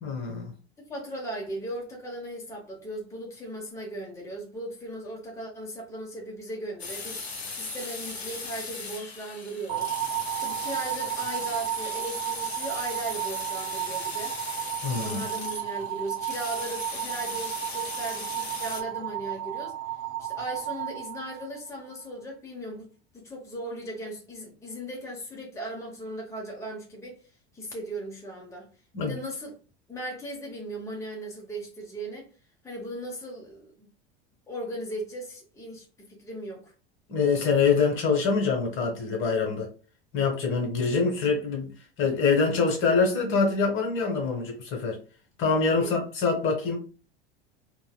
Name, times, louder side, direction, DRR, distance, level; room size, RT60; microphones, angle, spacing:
voice 1, 0.0-0.5 14.8-15.2 28.9-29.2 37.1-39.7 40.1-41.7 42.0-45.0 45.4-46.8, left 5 dB, 40° left, 1.1 m, -25 dB
voice 2, 0.9-9.9 10.4-14.3 15.0-19.7 20.2-22.9 23.1-27.2 27.5-28.7 29.0-29.5 29.9-32.3 32.6-33.9 34.5-35.9 36.2-36.7 45.8-45.9, right 1 dB, 10° left, 0.9 m, -37 dB
sound 1, 6.8-18.8, left 3 dB, 90° left, 0.6 m, -38 dB
sound 2, 9.7-21.9, right 14 dB, 45° right, 0.8 m, -33 dB
3.1 x 2.3 x 2.2 m
figure-of-eight pair, 80°, 31 cm